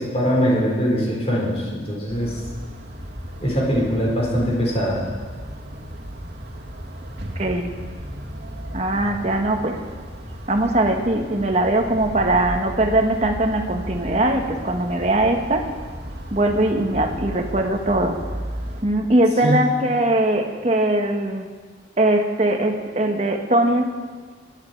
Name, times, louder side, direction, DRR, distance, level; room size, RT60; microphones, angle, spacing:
voice 1, 0.0-2.3 3.4-5.0 19.4-19.6, equal, 35° left, -4 dB, 5.2 m, -22 dB
sound 1, 2.1-18.8, equal, 65° right, 2.1 m, -35 dB
voice 2, 7.3-7.7 8.7-9.8 10.5-15.6 16.3-18.2 18.8-21.5 22.0-23.9, right 1 dB, 35° right, 4 dB, 1.5 m, -21 dB
23.0 x 11.5 x 4.8 m, 1.5 s
head